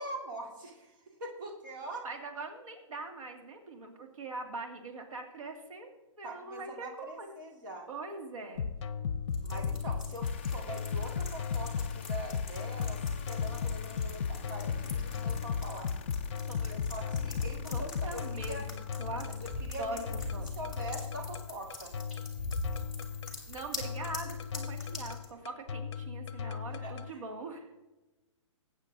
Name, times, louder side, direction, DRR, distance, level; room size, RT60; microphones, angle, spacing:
voice 1, 0.0-2.1 6.2-7.9 9.4-15.9 16.7-18.7 19.1-20.1 20.6-21.9 26.4-27.2, right 1 dB, 40° right, -1 dB, 2.2 m, -43 dB
voice 2, 2.0-7.3 7.9-8.7 16.5-16.7 17.7-19.4 19.8-20.0 20.3-20.5 23.3-27.7, right 2 dB, 90° right, 2 dB, 2.2 m, -42 dB
sound 1, 8.6-27.1, left 6 dB, 60° left, 0.8 m, -36 dB
sound 2, 9.3-25.3, left 2 dB, ahead, 2.3 m, -44 dB
sound 3, 10.2-24.9, left 8 dB, 20° left, 0.4 m, -51 dB
20.0 x 9.1 x 2.7 m, 1.1 s
hypercardioid pair, 175°, 17 cm